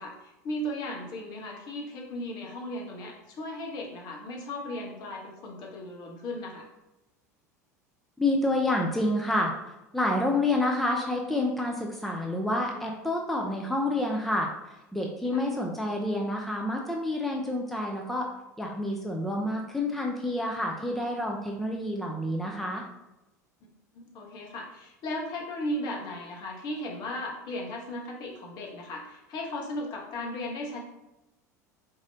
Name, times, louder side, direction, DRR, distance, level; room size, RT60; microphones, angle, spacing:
voice 1, 0.0-6.7 15.3-15.4 23.6-23.7 23.9-30.8, left 1 dB, 50° left, 0 dB, 1.2 m, -36 dB
voice 2, 8.2-9.5 9.9-14.5 14.9-18.3 18.6-22.8, left 1 dB, ahead, 0 dB, 0.7 m, -28 dB
4.7 x 3.8 x 2.8 m, 0.96 s
figure-of-eight pair, 75°, 9 cm